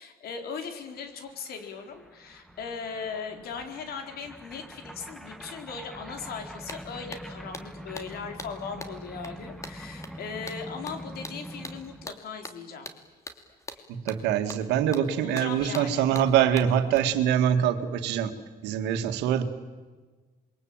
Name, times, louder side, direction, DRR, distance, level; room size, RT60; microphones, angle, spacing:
voice 1, 0.0-12.9 15.1-16.1, left 5 dB, 65° left, 6 dB, 4.4 m, -38 dB
sound 1, 1.0-12.1, equal, ahead, 1.9 m, -44 dB
sound 2, 6.3-6.4 6.7-17.0, left 2 dB, 20° left, 2.8 m, -44 dB
voice 2, 13.9-18.3 18.6-19.4, right 9 dB, 90° right, 7 dB, 2.2 m, -24 dB
27.5 x 23.0 x 9.0 m, 1.3 s
cardioid pair, 110°, 17 cm